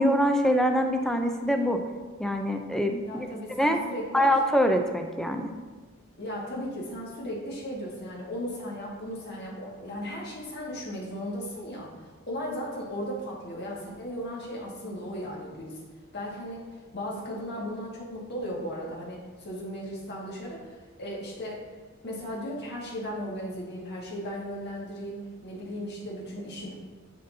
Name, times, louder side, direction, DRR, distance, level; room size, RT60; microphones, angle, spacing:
voice 1, 0.0-1.8 2.2-3.3 3.6-3.8 4.1-5.5, equal, 5° left, 5 dB, 0.4 m, -24 dB
voice 2, 3.0-4.3 6.2-15.8 16.1-16.7 16.9-20.7 21.0-21.6 22.0-26.7, equal, 55° left, -4 dB, 1.8 m, -36 dB
10.0 x 4.1 x 2.7 m, 1.3 s
head